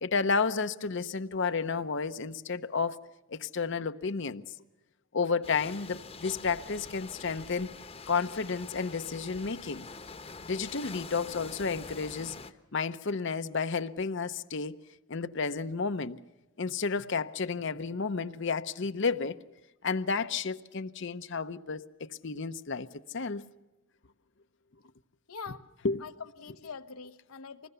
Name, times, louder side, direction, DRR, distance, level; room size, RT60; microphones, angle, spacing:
voice 1, 0.0-3.0 3.3-4.4 5.1-7.7 8.1-9.9 10.5-12.4 12.7-14.8 15.1-16.2 16.6-19.4 19.8-22.9 23.1-23.4 25.8-26.0, left 4 dB, 60° left, 0.7 m, -31 dB
sound 1, 5.4-12.5, left 4 dB, 25° left, 1.0 m, -45 dB
voice 2, 25.3-25.6 26.0-27.7, left 5 dB, 90° left, 1.1 m, -43 dB
25.0 x 20.5 x 6.9 m
head